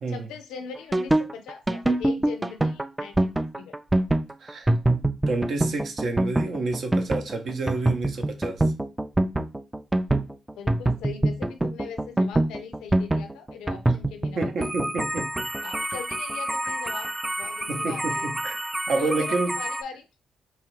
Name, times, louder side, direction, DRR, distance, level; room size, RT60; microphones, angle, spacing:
voice 1, 0.1-3.8 10.6-14.7 15.6-18.4 19.0-20.1, left 6 dB, 80° left, 0.3 m, -40 dB
sound 1, 0.8-19.8, right 1 dB, 15° right, 0.3 m, -25 dB
voice 2, 4.4-5.0 5.3-8.6 14.4-15.5 17.7-18.5 18.9-19.6, right 3 dB, 60° right, 0.6 m, -29 dB
2.8 x 2.4 x 3.0 m
hypercardioid pair, 45°, 0 cm